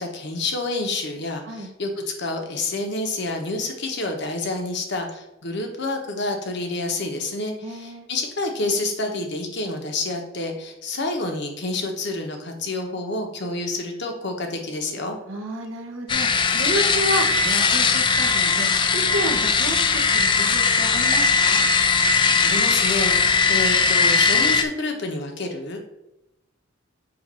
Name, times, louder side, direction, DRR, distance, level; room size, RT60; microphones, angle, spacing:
voice 1, 0.0-15.2 22.1-25.9, left 2 dB, 60° left, 3 dB, 1.1 m, -28 dB
voice 2, 7.6-8.1 15.3-21.6, right 1 dB, 75° right, 2 dB, 1.0 m, -31 dB
sound 1, 16.1-24.6, left 5 dB, 25° left, 0.4 m, -19 dB
7.8 x 2.6 x 5.4 m, 0.89 s
head